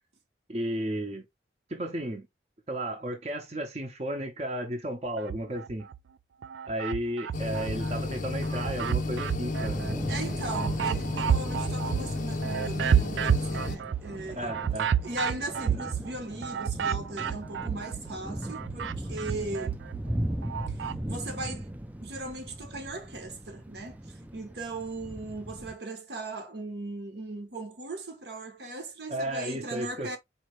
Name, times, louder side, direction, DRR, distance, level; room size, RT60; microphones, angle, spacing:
voice 1, 0.5-1.2 1.7-2.3 2.7-5.9 6.6-9.8 14.4-14.9 29.1-30.2, right 1 dB, 35° right, 0.8 m, -33 dB
sound 1, 5.2-6.0 6.4-8.0 8.4-18.1 18.4-21.0, right 8 dB, 85° right, 0.4 m, -31 dB
sound 2, 7.3-13.8, left 2 dB, 45° left, 0.5 m, -32 dB
Thunder / Rain, 9.6-25.7, right 1 dB, 10° right, 0.4 m, -38 dB
voice 2, 10.1-14.6 15.0-19.8 20.7-21.7 22.0-30.2, right 2 dB, 65° right, 1.0 m, -38 dB
4.2 x 2.8 x 3.1 m
head